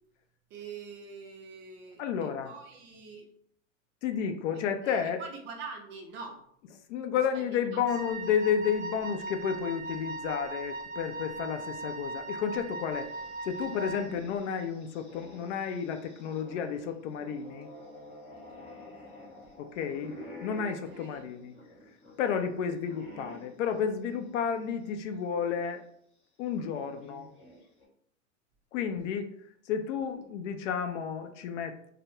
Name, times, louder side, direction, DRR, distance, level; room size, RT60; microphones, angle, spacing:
voice 1, 0.5-3.3 4.8-6.4 7.1-7.8 19.0-19.1 20.7-21.2 29.9-30.2, right 5 dB, 30° right, 1 dB, 0.4 m, -45 dB
voice 2, 2.0-2.5 4.0-5.2 6.9-13.1 13.4-17.7 19.6-20.1 20.4-21.5 22.2-25.8 26.4-27.3 28.7-29.3 29.7-31.9, left 7 dB, 65° left, 7 dB, 0.5 m, -31 dB
Wind instrument woodwind instrument, 7.9-14.2, right 2 dB, 85° right, 0.5 m, -39 dB
sound 1, 12.7-25.0 25.4-25.5 26.6-27.8, left 1 dB, 15° left, 0.6 m, -50 dB
2.1 x 2.0 x 3.0 m, 0.66 s
hypercardioid pair, 105°, 40 cm